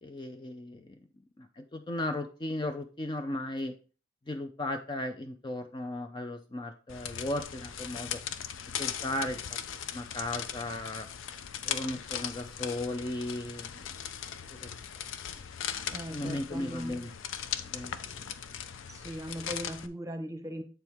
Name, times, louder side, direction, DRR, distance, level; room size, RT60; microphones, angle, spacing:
voice 1, 0.0-1.0 1.4-3.7 4.3-8.2 8.8-9.6 9.9-11.1 11.6-13.9 14.5-14.7 16.1-17.1 17.5-18.2, left 1 dB, 25° left, 6 dB, 0.5 m, -36 dB
sound 1, 6.9-19.9, left 9 dB, 70° left, 0.5 m, -39 dB
voice 2, 15.9-16.9 18.9-20.6, equal, 15° right, 6 dB, 0.9 m, -39 dB
7.8 x 4.6 x 3.5 m, 0.35 s
head